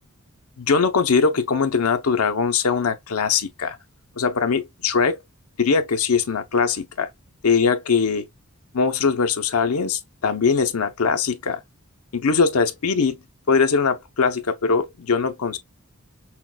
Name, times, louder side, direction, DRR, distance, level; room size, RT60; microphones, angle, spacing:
voice 1, 0.6-3.8 4.2-5.2 5.6-7.1 7.4-8.2 8.7-11.6 12.1-13.2 13.5-15.6, left 5 dB, 90° left, 0.7 m, -21 dB
5.7 x 2.3 x 2.2 m
head